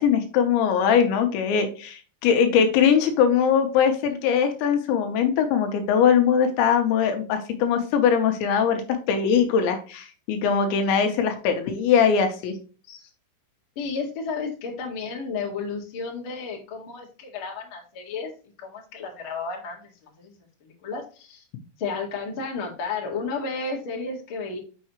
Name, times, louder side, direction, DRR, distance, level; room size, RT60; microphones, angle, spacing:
voice 1, 0.0-8.8 9.1-12.5 12.9-13.0, left 7 dB, 80° left, 7 dB, 3.0 m, -21 dB
voice 2, 13.7-18.3 18.6-19.9 20.2-21.4 21.8-24.6, left 4 dB, 60° left, -1 dB, 1.4 m, -32 dB
6.9 x 6.5 x 3.0 m, 0.37 s
omnidirectional pair, 5.6 m